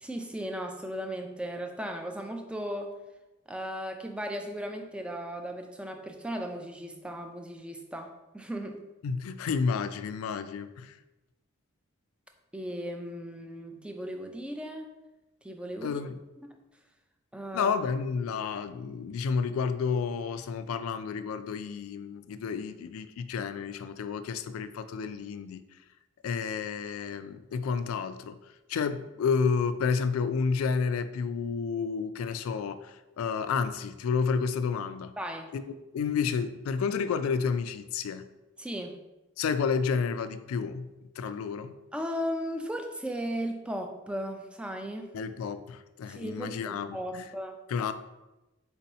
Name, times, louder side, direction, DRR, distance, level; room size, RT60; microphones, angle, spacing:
voice 1, 0.0-2.9 3.5-8.8 12.5-14.9 15.4-16.0 17.3-17.7 35.2-35.5 38.6-39.0 41.9-45.1 46.1-47.6, equal, 5° right, 4 dB, 0.3 m, -36 dB
voice 2, 9.0-11.0 15.8-16.2 17.5-25.6 26.2-28.4 28.7-35.1 35.5-35.6 35.9-38.3 39.4-41.7 45.1-47.3 47.7-47.9, left 5 dB, 85° left, 12 dB, 0.3 m, -30 dB
4.4 x 2.7 x 4.1 m, 1.0 s
head